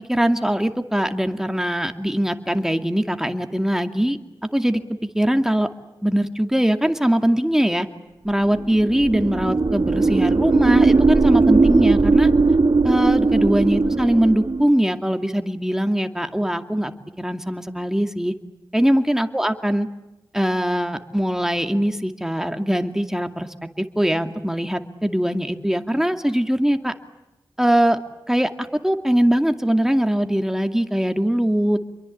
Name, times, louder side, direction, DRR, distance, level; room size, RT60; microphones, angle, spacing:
voice 1, 0.1-4.2 4.5-4.8 5.1-5.7 6.0-7.9 8.2-12.3 12.8-16.9 17.2-18.3 18.7-19.9 20.3-23.5 23.8-26.9 27.6-28.0 28.3-28.5 28.8-31.8, equal, 5° right, 7 dB, 2.3 m, -21 dB
sound 1, 8.6-14.7, right 3 dB, 60° right, 1.4 m, -18 dB
29.0 x 23.0 x 8.6 m, 1.0 s
wide cardioid pair, 65°, 8 cm